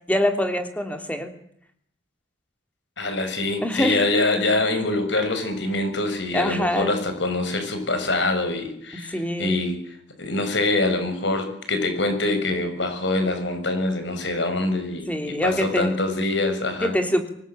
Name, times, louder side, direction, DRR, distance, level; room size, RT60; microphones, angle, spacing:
voice 1, 0.1-1.3 3.6-4.0 6.3-7.0 9.1-9.5 15.1-16.0 16.8-17.3, equal, 10° left, 6 dB, 3.2 m, -24 dB
voice 2, 3.0-9.7 10.2-16.9, left 2 dB, 70° left, 7 dB, 6.6 m, -24 dB
24.5 x 20.5 x 9.0 m, 0.68 s
head